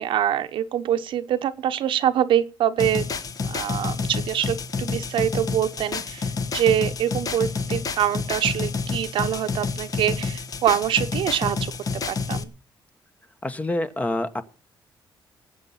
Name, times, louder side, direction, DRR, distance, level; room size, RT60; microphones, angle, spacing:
voice 1, 0.0-3.1 3.4-12.5, right 10 dB, 85° right, 9 dB, 1.0 m, -25 dB
sound 1, 2.8-12.4, left 4 dB, 45° left, 1.3 m, -29 dB
voice 2, 13.4-14.4, left 1 dB, 15° left, 11 dB, 1.1 m, -26 dB
18.5 x 8.3 x 5.8 m, 0.36 s
cardioid pair, 130°, 8 cm